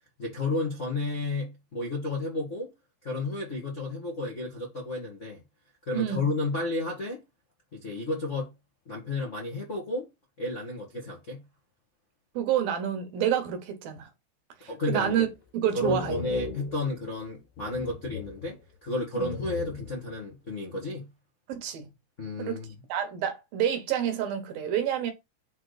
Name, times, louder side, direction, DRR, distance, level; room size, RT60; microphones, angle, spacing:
voice 1, 0.2-2.7 3.0-5.4 5.9-7.2 7.7-8.5 8.8-10.1 10.4-11.4 14.7-15.2 15.7-18.6 18.8-21.1 22.2-22.7, left 2 dB, 90° left, 0.6 m, -32 dB
voice 2, 5.9-6.4 12.4-14.1 14.6-16.2 19.2-19.3 21.5-21.9 22.4-22.6 22.9-25.1, right 9 dB, 70° right, 2.6 m, -28 dB
sound 1, 15.1-15.5 15.8-17.3 17.6-18.9 19.2-20.2, left 5 dB, 70° left, 3.1 m, -40 dB
9.2 x 3.4 x 4.0 m
omnidirectional pair, 4.8 m